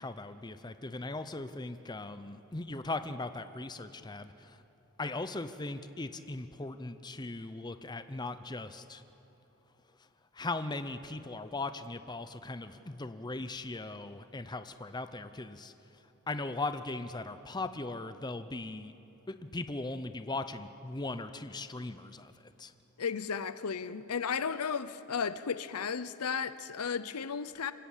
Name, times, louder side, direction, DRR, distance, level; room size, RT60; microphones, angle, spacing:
voice 1, 0.0-4.6 5.0-9.0 10.3-15.7 16.3-18.9 19.3-22.7, left 2 dB, 20° left, 0.6 m, -39 dB
voice 2, 23.0-27.7, left 6 dB, 90° left, 0.7 m, -34 dB
25.5 x 17.0 x 7.4 m
head